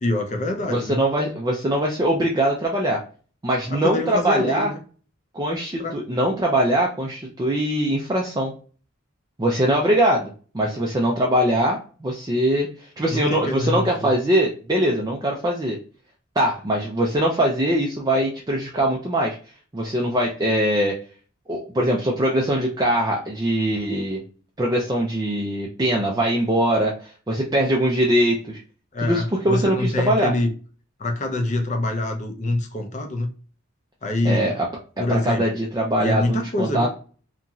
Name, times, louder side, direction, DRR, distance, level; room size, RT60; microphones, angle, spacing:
voice 1, 0.0-1.0 3.7-4.8 5.8-5.9 13.1-14.1 28.9-30.5 31.0-33.3 34.0-34.5 35.0-35.6 36.0-36.9, left 2 dB, 35° left, 3 dB, 0.5 m, -25 dB
voice 2, 0.6-3.0 3.4-4.7 5.3-8.5 9.4-15.8 16.4-19.4 19.7-21.0 21.5-24.2 24.6-28.6 29.0-30.3 34.2-34.7 35.1-36.9, right 1 dB, 20° right, -2 dB, 0.4 m, -22 dB
2.9 x 2.6 x 2.3 m, 0.39 s
head